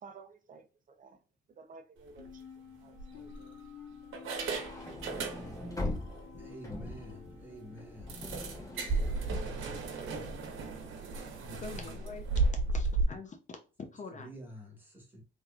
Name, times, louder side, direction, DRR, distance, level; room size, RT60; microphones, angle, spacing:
voice 1, 0.0-1.2 1.5-2.5 2.8-3.6, right 4 dB, 40° right, 0.7 m, -54 dB
sound 1, 2.1-2.3 3.0-3.7 4.1-5.8 6.1-6.2 6.7-6.8 7.1-7.2 8.1-13.0, right 3 dB, 80° right, 1.1 m, -34 dB
sound 2, 2.2-9.2, left 6 dB, 75° left, 1.0 m, -51 dB
sound 3, 4.4-10.7, left 2 dB, 15° left, 1.2 m, -42 dB
voice 2, 6.4-8.2 9.2-10.3 11.4-12.0 14.1-15.2, equal, 10° right, 1.6 m, -49 dB
voice 3, 11.6-13.4 13.9-14.3, left 3 dB, 40° left, 0.7 m, -45 dB
3.6 x 3.0 x 2.4 m
cardioid pair, 100°, 20 cm